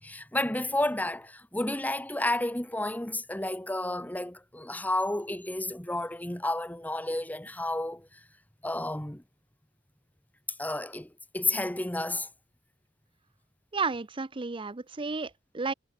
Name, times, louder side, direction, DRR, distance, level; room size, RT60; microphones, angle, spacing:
voice 1, 0.0-8.1 8.6-9.2 10.6-12.3, left 1 dB, 10° left, 1.4 m, -31 dB
voice 2, 13.7-15.7, right 4 dB, 25° right, 0.7 m, -32 dB
head